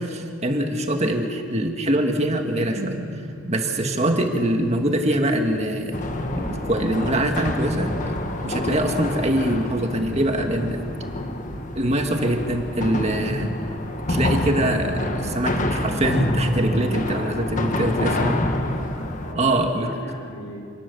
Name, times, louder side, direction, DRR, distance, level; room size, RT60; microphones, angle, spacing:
voice 1, 0.0-3.0 3.5-6.0 6.3-8.2 8.4-10.8 11.7-13.5 14.1-18.4 19.4-19.9, right 1 dB, 30° right, 4 dB, 1.9 m, -23 dB
sound 1, 2.2-15.9 16.3-19.1, right 1 dB, 70° right, 2.8 m, -38 dB
sound 2, 5.9-19.3, left 1 dB, 40° left, 1.7 m, -27 dB
voice 2, 18.3-20.6, equal, 80° left, 1 dB, 5.9 m, -39 dB
28.0 x 19.5 x 7.0 m, 2.4 s
head